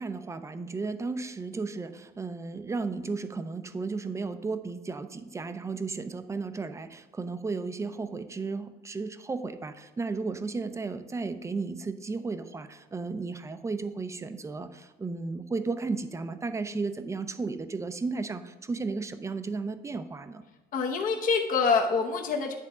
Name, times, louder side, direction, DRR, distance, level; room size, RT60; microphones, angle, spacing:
voice 1, 0.0-20.4, right 4 dB, 15° right, 10 dB, 0.5 m, -34 dB
voice 2, 20.7-22.5, left 5 dB, 55° left, 2 dB, 0.8 m, -26 dB
10.0 x 3.5 x 4.9 m, 1.2 s
cardioid pair, 110°, 17 cm